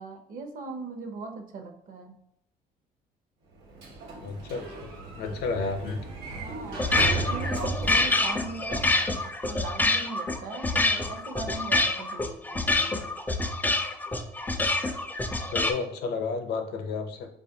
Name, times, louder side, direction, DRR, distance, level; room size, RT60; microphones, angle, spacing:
voice 1, 0.0-2.1 5.3-5.4 6.3-6.9 7.2-13.1, right 4 dB, 55° right, 4 dB, 0.7 m, -40 dB
Sliding door, 3.5-9.1, right 2 dB, 80° right, 1.0 m, -35 dB
voice 2, 4.2-6.0 15.5-17.3, left 4 dB, 75° left, 5 dB, 0.6 m, -32 dB
sound 1, 6.7-15.7, left 2 dB, 10° left, 0.3 m, -26 dB
4.7 x 2.4 x 2.7 m, 0.73 s
cardioid pair, 110°, 17 cm